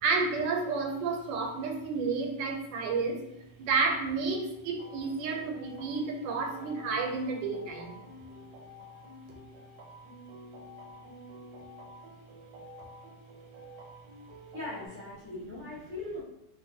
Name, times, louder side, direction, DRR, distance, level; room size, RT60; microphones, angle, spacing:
voice 1, 0.0-3.2 3.7-8.0, right 4 dB, 90° right, 2 dB, 1.3 m, -30 dB
sound 1, 4.8-14.9, equal, 70° right, 0.9 m, -50 dB
voice 2, 14.5-16.2, left 2 dB, 45° left, -10 dB, 0.6 m, -39 dB
3.1 x 2.3 x 2.6 m, 0.85 s
omnidirectional pair, 1.9 m